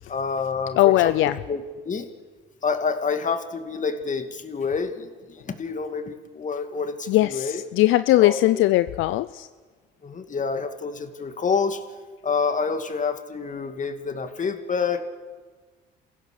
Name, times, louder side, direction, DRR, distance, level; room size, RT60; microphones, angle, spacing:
voice 1, 0.1-2.1 2.6-7.6 8.2-8.6 10.0-11.8 12.2-15.0, left 5 dB, 40° left, 7 dB, 2.3 m, -28 dB
voice 2, 0.8-1.4 7.1-9.5, left 16 dB, 75° left, 14 dB, 0.5 m, -19 dB
29.0 x 16.0 x 6.8 m, 1.4 s
supercardioid pair, 75°, 21 cm